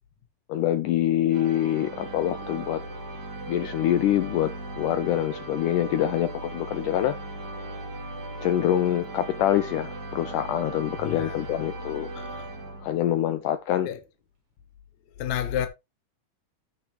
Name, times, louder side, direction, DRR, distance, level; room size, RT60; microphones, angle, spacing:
voice 1, 0.5-2.8 3.5-7.1 8.4-12.1 12.8-13.9, left 12 dB, 80° left, 1.8 m, -25 dB
sound 1, 1.3-13.3, right 2 dB, 65° right, 4.7 m, -38 dB
voice 2, 11.0-11.4 12.2-12.5 13.9-14.0 15.2-15.7, left 9 dB, 65° left, 2.1 m, -30 dB
14.0 x 5.9 x 3.1 m
omnidirectional pair, 4.4 m